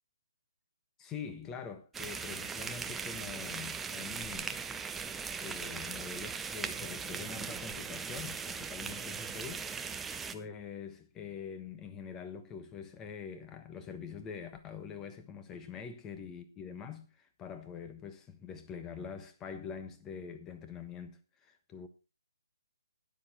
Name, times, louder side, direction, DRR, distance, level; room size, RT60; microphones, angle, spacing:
voice 1, 1.0-4.6 5.4-9.9 10.3-21.9, left 6 dB, 15° left, 1.3 m, -44 dB
sound 1, 1.9-10.4, right 5 dB, 5° right, 0.6 m, -39 dB
12.5 x 10.0 x 4.3 m
hypercardioid pair, 150°, 2 cm